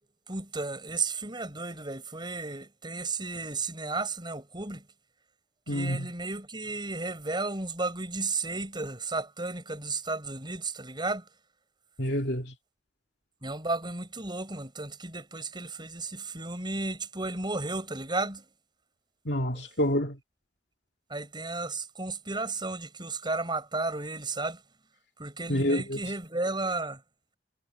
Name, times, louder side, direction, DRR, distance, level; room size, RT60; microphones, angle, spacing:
voice 1, 0.3-4.8 5.7-11.2 13.4-18.4 21.1-24.6 25.2-27.0, right 3 dB, 25° right, 6.7 m, -33 dB
voice 2, 5.7-6.1 12.0-12.5 19.3-20.2 25.5-26.0, equal, 65° left, 2.5 m, -28 dB
head